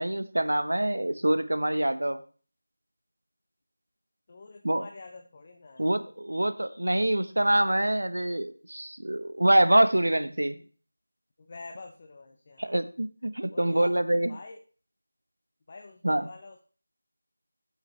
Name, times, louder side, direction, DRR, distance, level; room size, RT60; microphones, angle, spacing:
voice 1, 0.0-2.2 4.6-4.9 5.8-10.6 12.6-14.4 16.0-16.3, right 1 dB, 75° right, 11 dB, 1.1 m, -25 dB
voice 2, 4.3-5.9 11.4-12.8 13.5-14.0 14.3-14.6 15.7-16.6, left 3 dB, 30° left, 4 dB, 1.0 m, -46 dB
12.5 x 8.0 x 3.3 m, 0.39 s
figure-of-eight pair, 170°, 0 cm